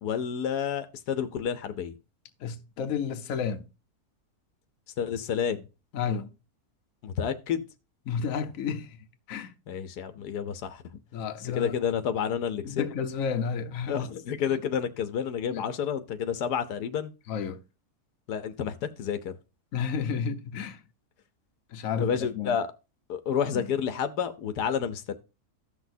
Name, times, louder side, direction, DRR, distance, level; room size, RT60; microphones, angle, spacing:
voice 1, 0.0-1.9 5.0-5.7 7.0-7.6 9.7-10.8 11.4-12.8 13.9-17.1 18.3-19.4 22.0-22.7 23.1-25.1, left 7 dB, 90° left, 1.4 m, -30 dB
voice 2, 2.4-3.7 5.9-6.3 8.1-9.0 9.3-9.5 11.1-11.7 12.6-14.1 14.5-14.6 15.5-15.6 17.3-17.6 19.7-20.8 21.7-22.6 23.5-23.7, left 6 dB, 60° left, 1.2 m, -31 dB
15.0 x 6.2 x 2.6 m
omnidirectional pair, 1.7 m